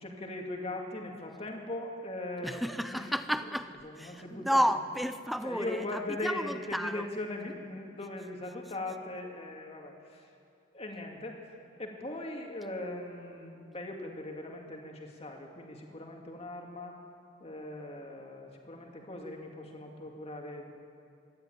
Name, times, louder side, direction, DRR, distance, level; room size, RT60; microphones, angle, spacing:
voice 1, 0.0-3.5 3.8-4.6 5.4-10.3 10.7-11.5 11.8-17.0 17.4-20.7, left 1 dB, 30° left, 1 dB, 2.3 m, -40 dB
voice 2, 2.4-7.0, equal, ahead, 11 dB, 0.5 m, -32 dB
26.0 x 11.5 x 9.2 m, 2.5 s
head